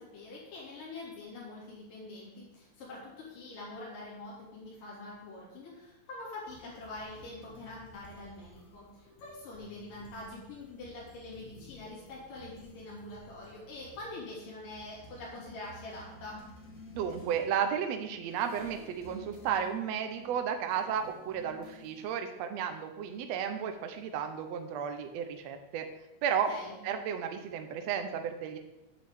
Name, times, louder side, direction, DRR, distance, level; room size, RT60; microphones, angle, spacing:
voice 1, 0.0-16.4 26.3-26.8, left 2 dB, 80° left, -6 dB, 4.5 m, -45 dB
sound 1, 6.5-22.2, left 1 dB, 40° left, 1.4 m, -54 dB
voice 2, 16.9-25.9 26.2-26.5 26.8-28.6, right 8 dB, 70° right, 6 dB, 1.7 m, -33 dB
8.5 x 6.6 x 7.9 m, 0.96 s
omnidirectional pair, 3.8 m